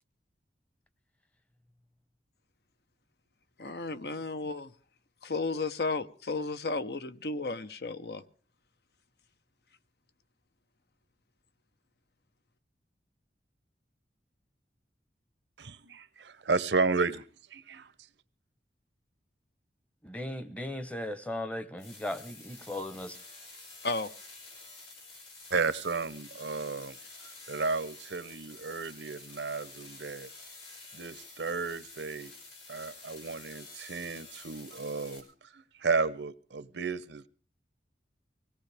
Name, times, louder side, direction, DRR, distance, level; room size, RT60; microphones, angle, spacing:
voice 1, 3.6-4.7 5.2-8.2 23.8-24.1, left 3 dB, 65° left, 0.8 m, -33 dB
voice 2, 15.6-17.8 25.5-27.0 27.2-30.3 30.9-32.3 32.7-37.3, right 4 dB, 85° right, 0.8 m, -33 dB
voice 3, 20.0-23.2, left 1 dB, 10° left, 0.8 m, -37 dB
sound 1, 21.8-35.2, left 3 dB, 90° left, 5.9 m, -50 dB
24.0 x 17.5 x 3.4 m
head